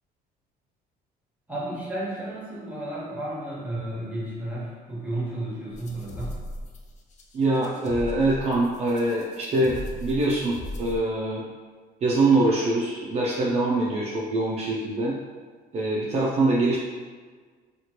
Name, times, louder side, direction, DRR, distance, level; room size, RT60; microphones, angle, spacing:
voice 1, 1.5-6.4, right 1 dB, 10° right, -6 dB, 1.0 m, -33 dB
sound 1, 5.7-11.0, left 1 dB, 45° left, 0.5 m, -37 dB
voice 2, 7.3-11.4 12.0-15.1 15.7-16.8, right 2 dB, 40° right, -5 dB, 0.4 m, -24 dB
2.9 x 2.4 x 2.9 m, 1.5 s
cardioid pair, 110°, 17 cm